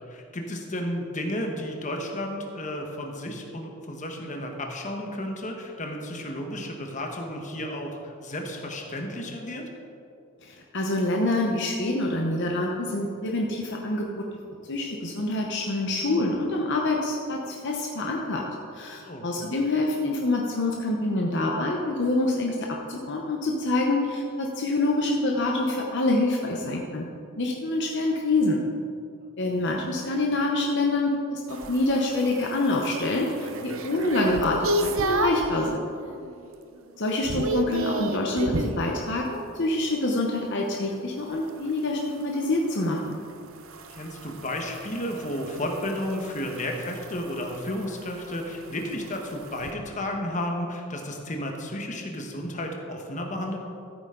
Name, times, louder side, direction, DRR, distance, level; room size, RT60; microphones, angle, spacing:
voice 1, 0.1-9.7 19.0-19.3 29.2-29.3 40.9-41.0 43.9-53.6, left 1 dB, 35° left, 2 dB, 1.3 m, -32 dB
voice 2, 10.4-14.1 14.7-18.5 18.7-27.0 27.4-28.6 29.4-35.8 37.0-43.2, left 2 dB, 55° left, 0 dB, 0.9 m, -26 dB
sound 1, 31.5-35.5 36.0-36.5 36.7-38.8 41.3-49.7, right 2 dB, 65° right, 0.7 m, -33 dB
14.0 x 8.7 x 3.8 m, 2.5 s
head